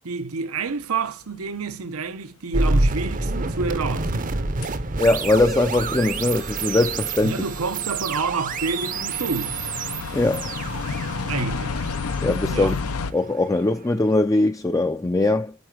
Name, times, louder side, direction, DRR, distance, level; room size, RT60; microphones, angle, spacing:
voice 1, 0.0-4.5 7.2-9.5 11.3-11.9 12.5-12.8, right 4 dB, 85° right, 0.8 m, -28 dB
sound 1, 1.9-2.0 4.6-4.7 5.4-5.5 5.7-13.1, left 4 dB, 80° left, 0.6 m, -32 dB
sound 2, 2.5-13.6, right 3 dB, 35° right, 0.7 m, -28 dB
voice 2, 5.0-7.4 10.1-10.5 12.2-12.8 13.1-15.5, left 2 dB, 15° left, 0.4 m, -21 dB
8.1 x 4.8 x 4.6 m
head